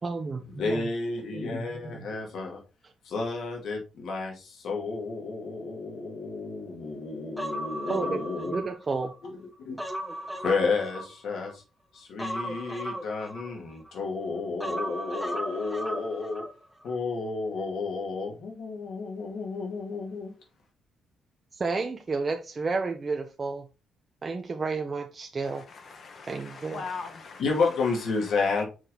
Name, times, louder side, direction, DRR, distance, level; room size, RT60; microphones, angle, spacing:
voice 1, 0.0-0.9 7.9-8.2 8.5-9.1 21.5-23.7 24.2-25.6 26.2-26.8, right 4 dB, 35° right, 0.8 m, -31 dB
voice 2, 0.5-2.6 3.0-8.6 9.2-9.8 10.4-11.6 11.9-16.4 16.8-20.3 27.4-28.7, left 4 dB, 70° left, 2.2 m, -31 dB
Human voice, 7.4-9.2 9.5-11.5 12.2-14.0 14.6-16.5 16.8-16.9, equal, ahead, 0.7 m, -36 dB
voice 3, 25.4-27.4 28.1-28.4, left 5 dB, 50° left, 1.3 m, -41 dB
6.2 x 3.9 x 4.0 m
cardioid pair, 90°, 0 cm